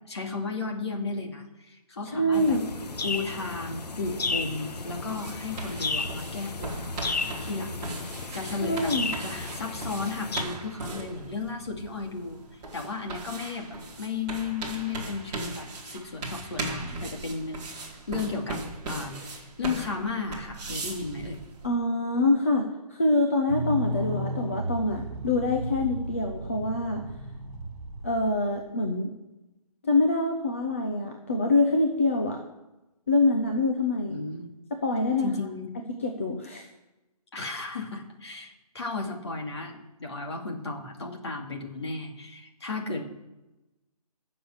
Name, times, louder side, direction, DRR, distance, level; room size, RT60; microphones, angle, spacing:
voice 1, 0.1-2.6 3.0-6.9 7.4-7.9 8.3-8.9 9.2-12.4 12.7-18.6 18.9-21.4 34.1-34.5 35.2-35.7 37.3-43.0, left 4 dB, 40° left, 2 dB, 2.3 m, -34 dB
voice 2, 2.0-2.6 8.6-9.1 21.6-27.0 28.0-29.1 29.8-32.4 33.1-34.2 34.8-35.3 36.0-36.6, left 2 dB, 20° left, 2 dB, 0.7 m, -25 dB
sound 1, 2.3-10.4, left 4 dB, 85° left, 1.4 m, -34 dB
sound 2, 4.0-21.7, right 2 dB, 10° right, 2.0 m, -39 dB
sound 3, 23.5-28.3, right 1 dB, 45° right, 2.9 m, -34 dB
15.5 x 6.9 x 7.9 m, 1.0 s
hypercardioid pair, 180°, 20 cm